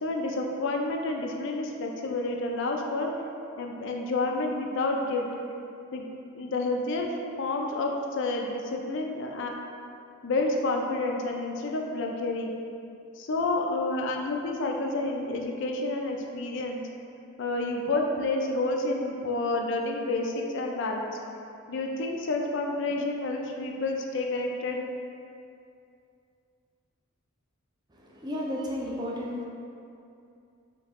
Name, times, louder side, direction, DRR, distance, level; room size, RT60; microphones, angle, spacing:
voice 1, 0.0-3.1 3.6-5.3 5.9-6.1 6.3-7.1 7.4-9.5 10.2-12.5 13.2-16.8 17.4-21.2 21.7-24.8, left 2 dB, 55° left, 1 dB, 0.4 m, -29 dB
voice 2, 28.1-29.5, left 1 dB, 20° right, -3 dB, 0.5 m, -32 dB
5.3 x 2.8 x 3.5 m, 2.5 s
head